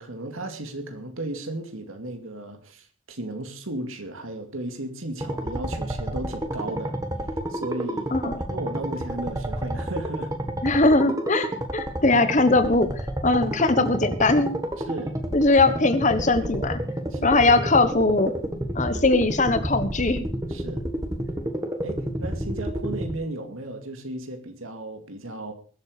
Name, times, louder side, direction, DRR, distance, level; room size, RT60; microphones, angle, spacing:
voice 1, 0.0-7.0 7.5-10.3 14.9-15.2 15.4-15.6 17.1-17.4 20.5-20.8 21.8-25.5, right 2 dB, 75° right, 2.4 m, -35 dB
sound 1, 5.2-23.1, right 1 dB, 15° right, 1.6 m, -30 dB
voice 2, 10.6-14.5 15.3-16.8 17.2-18.3 18.7-20.3, left 2 dB, 35° left, 1.2 m, -20 dB
22.0 x 8.0 x 5.0 m
head